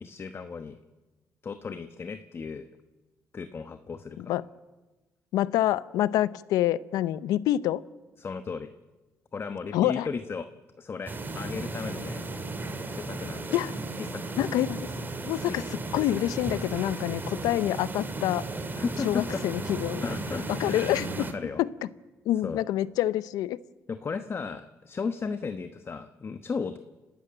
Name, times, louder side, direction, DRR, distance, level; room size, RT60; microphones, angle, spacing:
voice 1, 0.0-0.8 1.4-2.7 3.3-4.3 8.2-8.7 9.3-10.5 10.8-12.3 12.9-13.6 14.0-14.5 15.4-15.7 18.7-19.4 20.0-21.6 22.4-22.6 23.9-26.8, left 5 dB, 40° left, 9 dB, 1.1 m, -35 dB
voice 2, 5.3-7.8 9.7-10.1 13.5-13.8 14.4-14.9 15.3-18.4 19.0-20.0 20.5-21.3 21.6-21.7 22.3-23.6, left 13 dB, 90° left, 18 dB, 0.6 m, -27 dB
sound 1, 11.1-21.3, right 2 dB, 30° right, 2.6 m, -35 dB
30.0 x 13.0 x 8.9 m, 1.2 s
cardioid pair, 80°, 6 cm